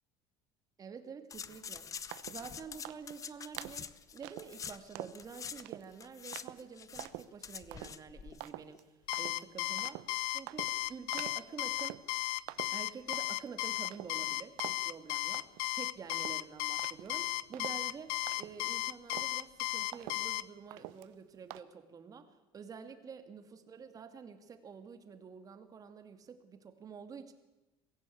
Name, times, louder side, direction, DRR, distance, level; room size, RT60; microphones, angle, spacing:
voice 1, 0.8-1.9 2.3-8.8 9.2-10.0 10.3-12.0 12.7-15.5 15.7-27.3, right 6 dB, 30° right, 7 dB, 2.4 m, -48 dB
sound 1, 1.3-5.6 5.9-8.5 8.7-8.8, left 7 dB, 30° left, 0.8 m, -46 dB
sound 2, 2.1-2.5 2.8-3.2 3.6-3.9 4.2-4.6 5.0-5.3 5.6-5.9 6.3-6.6 7.0-7.3 7.7-8.0 8.4-8.8 9.1-9.5 9.8-10.1 10.5-10.8 11.1-11.5 11.8-12.2 12.5-13.5 13.8-14.3 14.6-15.0 15.3-15.8 16.1-18.8 19.1-19.5 19.9-20.4 20.7-21.1 21.5-21.6, right 17 dB, 90° right, 0.9 m, -46 dB
Alarm, 9.1-20.4, left 20 dB, 90° left, 0.7 m, -35 dB
23.5 x 15.5 x 8.7 m, 1.1 s
cardioid pair, 130°, 11 cm